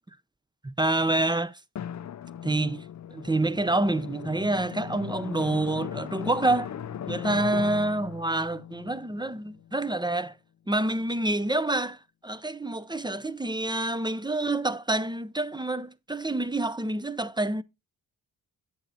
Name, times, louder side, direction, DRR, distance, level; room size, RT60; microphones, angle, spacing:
voice 1, 0.6-1.6 2.4-2.8 3.1-6.8 7.1-10.3 10.7-12.0 12.2-17.6, right 2 dB, 10° right, 0.5 m, -27 dB
Drum, 1.7-10.0, left 9 dB, 40° left, 0.5 m, -38 dB
8.2 x 7.5 x 2.7 m
cardioid pair, 45°, 44 cm